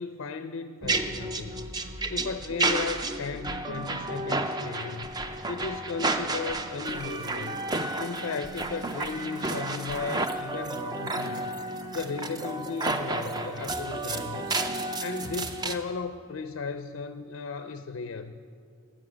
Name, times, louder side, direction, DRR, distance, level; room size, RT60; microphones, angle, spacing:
voice 1, 0.0-1.7 2.1-5.1 5.5-7.6 8.0-11.5 11.9-14.6 15.0-18.3, left 4 dB, 55° left, 10 dB, 0.4 m, -35 dB
sound 1, 0.8-15.8, right 2 dB, 20° right, 0.4 m, -31 dB
13.5 x 7.5 x 6.2 m, 2.3 s
head